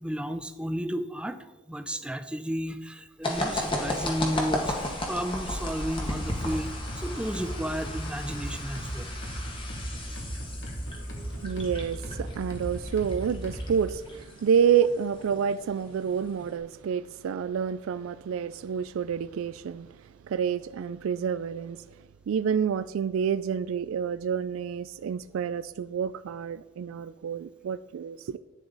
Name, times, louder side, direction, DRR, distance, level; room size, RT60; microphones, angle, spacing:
voice 1, 0.0-9.2, equal, 5° right, 0.5 m, -33 dB
sound 1, 3.2-16.5, left 1 dB, 25° left, 1.5 m, -35 dB
sound 2, 6.4-13.9, right 1 dB, 65° left, 2.3 m, -37 dB
voice 2, 11.4-20.0 20.3-21.9 22.3-28.4, right 7 dB, 85° right, 0.3 m, -28 dB
11.0 x 9.3 x 4.0 m
head